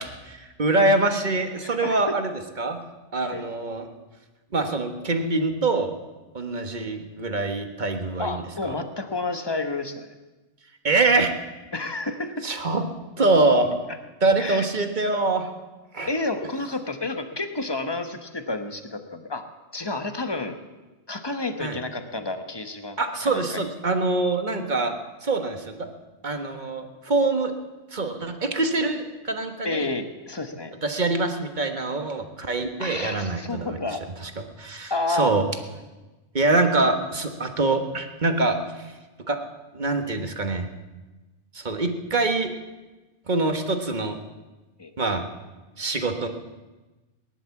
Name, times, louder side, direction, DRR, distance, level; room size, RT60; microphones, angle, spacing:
voice 1, 0.0-2.3 2.6-2.8 3.1-3.9 4.5-5.9 6.3-8.8 10.8-11.3 12.4-12.8 13.2-13.7 14.2-15.5 15.9-16.1 21.6-21.8 23.0-24.9 25.2-25.9 26.2-27.5 27.9-29.9 30.8-33.8 34.6-35.4 36.3-38.9 39.3-39.4 39.7-40.7 41.5-42.5 43.3-44.2 45.0-45.2 45.8-46.3, right 3 dB, 40° right, 6 dB, 1.5 m, -24 dB
voice 2, 1.6-2.0 3.3-3.4 8.2-10.1 11.7-12.5 14.4-14.7 16.1-19.5 19.7-20.5 21.1-23.7 29.6-30.7 32.8-34.0 34.9-35.3 44.8-44.9, left 2 dB, 20° left, 7 dB, 1.1 m, -30 dB
18.0 x 11.0 x 7.1 m, 1.2 s
omnidirectional pair, 1.2 m